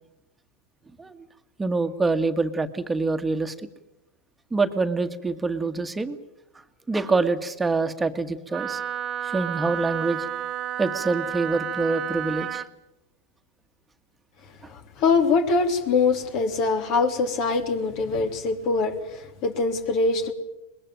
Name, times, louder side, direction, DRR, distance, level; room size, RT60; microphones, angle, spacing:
voice 1, 1.6-3.5 4.5-6.2 6.9-8.8 9.3-10.3 10.8-12.6, right 3 dB, 10° right, 8 dB, 1.8 m, -25 dB
Wind instrument woodwind instrument, 8.5-12.7, right 10 dB, 35° right, 1.0 m, -31 dB
voice 2, 14.7-20.3, left 4 dB, 50° left, 6 dB, 3.2 m, -23 dB
23.0 x 21.0 x 9.1 m, 0.91 s
hypercardioid pair, 110°, 0 cm